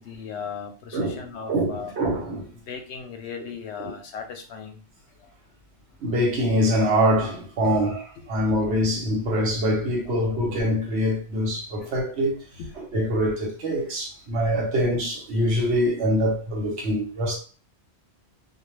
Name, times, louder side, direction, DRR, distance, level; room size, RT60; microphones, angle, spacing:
voice 1, 0.0-1.9 2.5-4.8 5.2-5.3 7.6-7.8 8.2-8.3 11.8-11.9 12.6-12.8 14.3-14.5, left 6 dB, 85° left, 0.9 m, -37 dB
voice 2, 1.5-2.5 3.8-3.9 6.0-8.0 8.3-12.4 12.8-17.4, equal, 75° right, 1.1 m, -24 dB
2.3 x 2.2 x 3.1 m
omnidirectional pair, 1.1 m